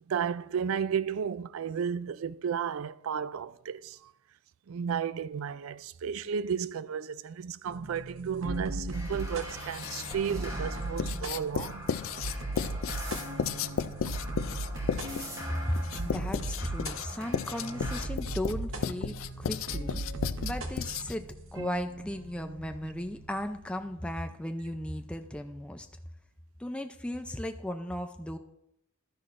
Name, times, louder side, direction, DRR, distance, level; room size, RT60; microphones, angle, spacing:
voice 1, 0.1-4.1 4.7-11.9, right 7 dB, 85° right, 0.4 m, -33 dB
sound 1, 7.7-23.9, right 2 dB, 70° right, 1.0 m, -38 dB
sound 2, 8.9-18.0, equal, 15° right, 2.3 m, -44 dB
Writing, 9.6-10.3 11.0-21.3, left 7 dB, 75° left, 0.4 m, -34 dB
voice 2, 16.0-20.0 20.4-21.2 21.5-25.9 26.6-28.4, left 1 dB, 5° left, 0.4 m, -36 dB
12.0 x 10.0 x 2.5 m
head